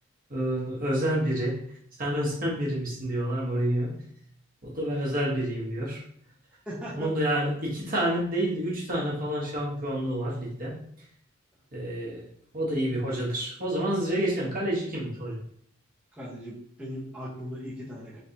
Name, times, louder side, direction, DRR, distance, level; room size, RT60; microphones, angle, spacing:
voice 1, 0.3-1.6 2.0-3.9 4.6-6.0 7.0-10.7 11.7-12.2 12.5-15.4, right 1 dB, 45° right, -5 dB, 1.2 m, -28 dB
voice 2, 6.6-7.0 16.2-18.2, equal, 5° right, -8 dB, 0.9 m, -38 dB
3.8 x 3.4 x 2.9 m, 0.65 s
head